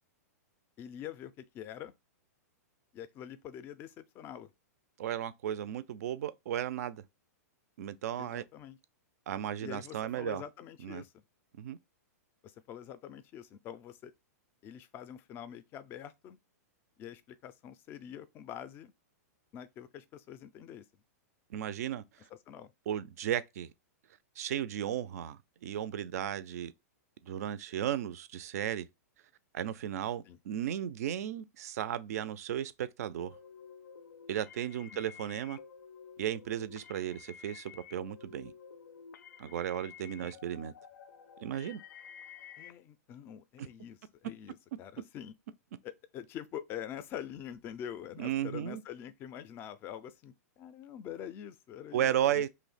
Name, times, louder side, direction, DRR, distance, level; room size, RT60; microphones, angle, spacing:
voice 1, 0.8-1.9 2.9-4.5 8.2-8.8 9.6-11.2 12.4-14.1 14.6-16.4 17.0-18.9 19.5-20.8 22.3-22.7 30.3-30.4 34.9-35.0 40.2-40.3 42.6-45.3 45.8-52.5, left 10 dB, 25° left, 0.3 m, -45 dB
voice 2, 5.0-7.0 7.8-8.4 9.3-10.4 10.8-11.0 11.6-11.8 21.5-22.0 22.9-23.7 24.4-26.7 27.2-28.9 29.5-33.3 34.3-35.6 36.2-38.5 39.4-40.7 41.4-41.8 48.2-48.8 51.9-52.5, right 10 dB, 65° right, 0.4 m, -35 dB
sound 1, 33.2-42.7, left 7 dB, 90° left, 0.4 m, -51 dB
2.7 x 2.1 x 3.9 m
hypercardioid pair, 145°, 9 cm